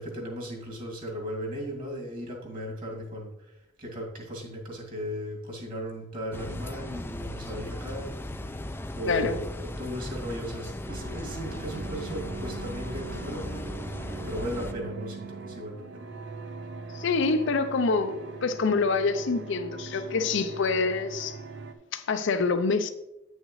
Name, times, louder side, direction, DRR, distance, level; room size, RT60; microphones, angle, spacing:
voice 1, 0.0-8.1 8.9-13.5 14.2-16.1, equal, 45° right, 2.3 m, -36 dB
sound 1, 6.3-14.7, left 1 dB, 10° left, 0.4 m, -37 dB
voice 2, 9.0-9.4 16.9-21.4 21.9-22.9, left 4 dB, 65° left, 0.6 m, -26 dB
sound 2, 10.9-21.7, right 4 dB, 60° right, 0.6 m, -41 dB
9.1 x 6.4 x 3.2 m
head